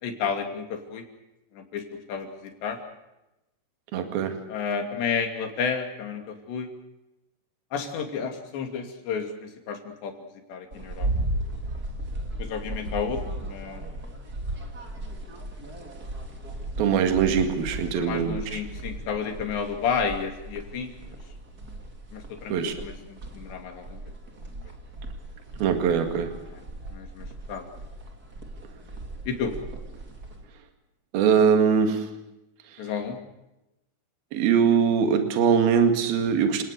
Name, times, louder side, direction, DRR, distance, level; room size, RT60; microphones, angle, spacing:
voice 1, 0.0-1.0 1.6-2.3 2.6-2.8 4.5-6.7 7.7-10.1 10.5-11.1 12.4-13.8 18.0-20.9 22.1-22.9 23.3-24.0 26.9-27.7 29.3-29.5 32.8-33.2, left 6 dB, 85° left, 4 dB, 4.9 m, -31 dB
voice 2, 3.9-4.4 16.8-18.6 22.5-22.7 25.6-26.3 31.1-32.1 34.3-36.6, right 7 dB, 65° right, 6 dB, 3.8 m, -22 dB
sound 1, 10.7-30.4, right 1 dB, 25° right, 2.9 m, -36 dB
30.0 x 18.5 x 6.8 m, 0.94 s
omnidirectional pair, 4.9 m